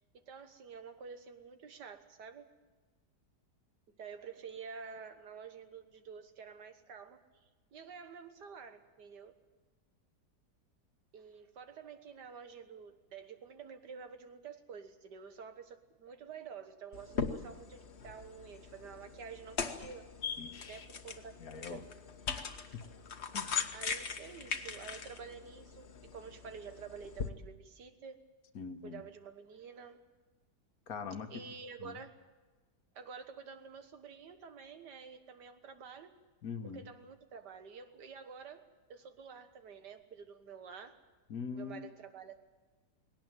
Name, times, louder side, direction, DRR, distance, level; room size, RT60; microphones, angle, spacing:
voice 1, 0.0-2.5 4.0-7.2 7.7-9.4 11.1-20.1 20.7-21.8 23.7-28.2 28.8-30.0 31.3-32.2 32.9-36.1 36.7-38.6 38.9-41.0 41.5-42.4, right 6 dB, 85° right, 8 dB, 2.0 m, -49 dB
sound 1, 16.9-27.3, left 5 dB, 45° left, 1.2 m, -40 dB
voice 2, 20.4-20.9 21.4-21.8 22.7-22.8 23.3-23.7 28.5-29.0 30.9-31.3 31.8-32.0 36.4-36.9 41.3-41.9, left 6 dB, 65° left, 9 dB, 1.5 m, -43 dB
19.5 x 17.5 x 9.1 m, 1.3 s
omnidirectional pair, 1.8 m